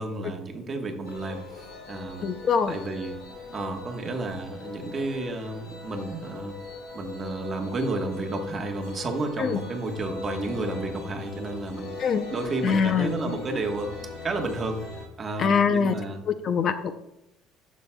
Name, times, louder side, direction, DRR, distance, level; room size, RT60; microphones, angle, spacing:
voice 1, 0.0-1.6 1.9-2.3 2.7-3.1 3.5-6.5 6.9-11.9 12.3-13.9 14.2-14.9 15.2-16.2, right 2 dB, 25° right, 2 dB, 1.2 m, -31 dB
sound 1, 1.0-15.1, left 4 dB, 90° left, 3.0 m, -40 dB
voice 2, 2.2-2.7 9.4-9.6 12.0-12.2 12.6-13.4 15.4-15.9 16.3-16.9, left 6 dB, 35° left, 10 dB, 0.5 m, -24 dB
11.5 x 7.2 x 2.2 m, 0.85 s
cardioid pair, 155°, 0 cm